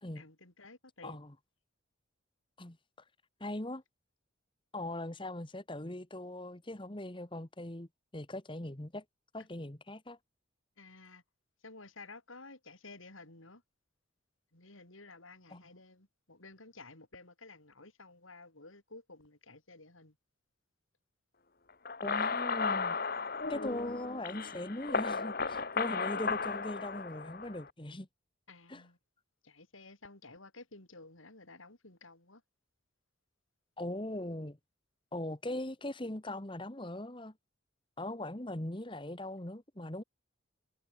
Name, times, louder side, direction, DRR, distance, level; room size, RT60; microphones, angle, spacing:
voice 1, 0.2-1.2 10.8-11.2 11.6-13.6 14.5-20.1 28.5-29.0 29.4-32.4, left 3 dB, 85° left, 5.8 m, -53 dB
voice 2, 1.0-1.3 2.6-2.8 3.4-3.8 4.7-7.9 8.1-9.0 9.3-10.2 15.5-15.7 22.0-23.0 23.5-28.1 28.7-28.9 33.8-34.6 35.1-37.3 38.0-40.0, left 1 dB, 25° left, 1.5 m, -40 dB
sound 1, 21.9-27.7, left 4 dB, 45° left, 1.6 m, -35 dB
head